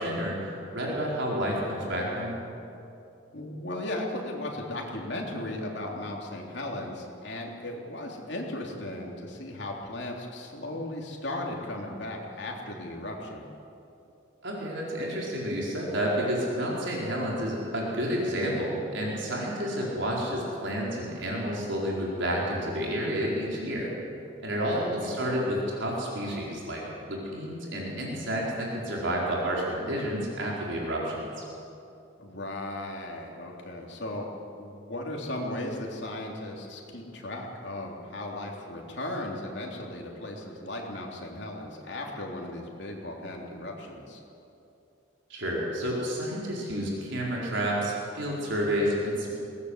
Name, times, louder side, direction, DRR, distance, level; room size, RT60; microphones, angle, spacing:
voice 1, 0.0-2.3 14.4-23.9 24.4-31.2 45.3-49.3, equal, 65° right, -4 dB, 4.5 m, -30 dB
voice 2, 3.3-13.4 24.7-25.2 32.2-34.3 34.6-44.2, left 1 dB, 55° left, -1 dB, 3.4 m, -36 dB
21.5 x 18.0 x 8.2 m, 2.8 s
head